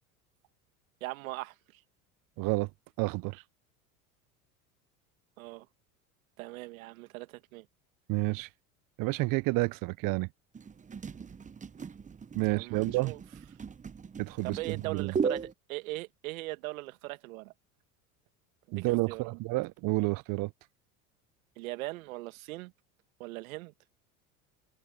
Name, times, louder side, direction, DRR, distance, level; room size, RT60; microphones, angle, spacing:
voice 1, 1.0-1.8 5.4-5.7 6.4-7.7 12.4-13.2 14.4-17.5 18.7-19.3 21.6-22.7 23.2-23.7, right 21 dB, 70° right, 1.9 m, -40 dB
voice 2, 2.4-2.7 3.0-3.4 8.1-8.5 9.0-10.3 12.4-13.1 14.2-15.1 18.7-20.5, right 23 dB, 50° right, 0.8 m, -30 dB
sound 1, 10.5-15.5, right 5 dB, 20° right, 1.0 m, -37 dB
hypercardioid pair, 85°, 42 cm